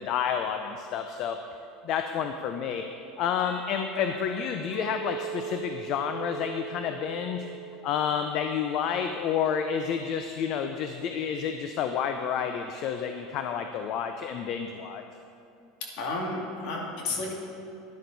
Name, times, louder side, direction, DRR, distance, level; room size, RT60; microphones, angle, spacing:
voice 1, 0.0-1.4 1.8-2.9 3.2-7.5 7.8-15.0, left 7 dB, 50° left, 6 dB, 0.5 m, -30 dB
Doorbell, 3.4-6.2, right 1 dB, 10° right, 2.8 m, -49 dB
Chink clink, 4.7-9.1 9.4-9.8, right 8 dB, 40° right, 0.6 m, -40 dB
voice 2, 16.0-17.3, left 2 dB, 65° left, -1 dB, 2.3 m, -32 dB
11.0 x 10.5 x 4.0 m, 2.6 s
supercardioid pair, 140°, 0 cm